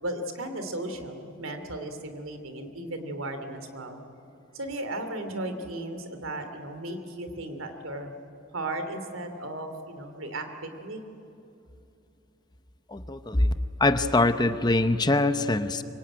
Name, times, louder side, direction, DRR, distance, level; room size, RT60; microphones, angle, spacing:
voice 1, 0.0-4.0 4.5-8.1 8.5-11.0, right 1 dB, 80° right, 7 dB, 3.0 m, -35 dB
voice 2, 12.9-13.5 13.8-15.8, left 2 dB, 20° left, 10 dB, 0.8 m, -23 dB
25.0 x 24.0 x 9.0 m, 2.7 s
head